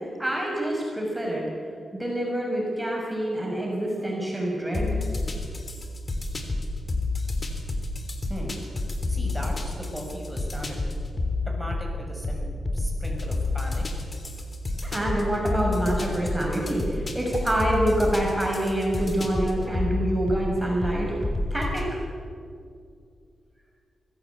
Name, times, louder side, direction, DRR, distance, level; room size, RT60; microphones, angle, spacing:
voice 1, 0.0-1.4 1.9-5.0 14.8-21.2 21.5-22.0, right 1 dB, 10° right, -2 dB, 6.1 m, -26 dB
sound 1, 4.7-21.9, left 2 dB, 40° left, 3.3 m, -30 dB
voice 2, 8.2-8.5 9.1-10.9 11.4-12.5 12.7-13.8, equal, 10° left, 0 dB, 6.8 m, -37 dB
23.0 x 15.5 x 8.5 m, 2.3 s
cardioid pair, 65°, 0 cm